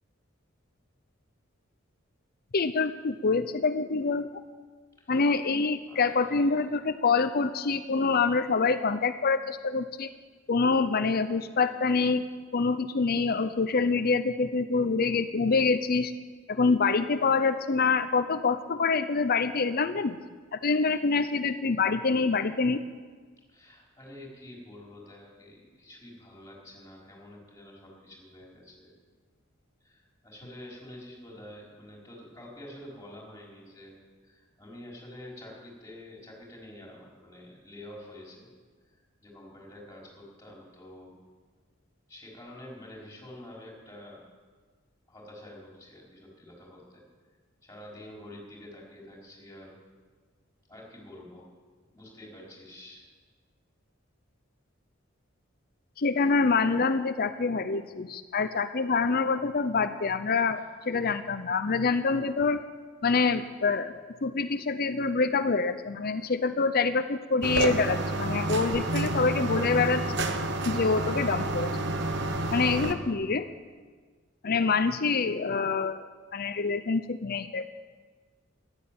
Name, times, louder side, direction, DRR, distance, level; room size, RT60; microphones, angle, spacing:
voice 1, 2.5-4.3 5.1-10.1 10.5-12.2 12.5-16.1 16.5-20.2 20.5-22.8 56.0-62.6 63.0-63.9 64.2-70.2 70.7-71.7 72.5-73.4 74.4-77.7, left 4 dB, 50° left, 11 dB, 0.7 m, -26 dB
voice 2, 5.9-6.6 23.5-28.9 29.8-33.9 34.2-38.5 39.2-41.2 42.1-44.2 45.1-47.0 47.6-49.8 50.7-51.5 51.9-53.0, left 1 dB, 15° left, -3 dB, 4.9 m, -47 dB
sound 1, 67.4-72.9, right 2 dB, 60° right, 1.2 m, -29 dB
14.5 x 11.5 x 8.7 m, 1.5 s
head